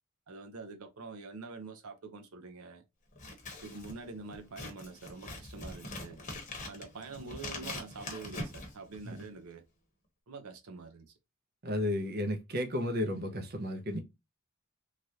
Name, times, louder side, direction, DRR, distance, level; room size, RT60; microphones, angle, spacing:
voice 1, 0.3-2.8 3.6-6.2 6.7-9.6 10.3-11.1, right 4 dB, 85° right, 0.7 m, -46 dB
Scissors, 3.1-9.4, left 2 dB, 35° left, 0.9 m, -43 dB
voice 2, 11.6-14.0, left 1 dB, 45° right, 0.6 m, -33 dB
3.2 x 2.5 x 2.7 m
head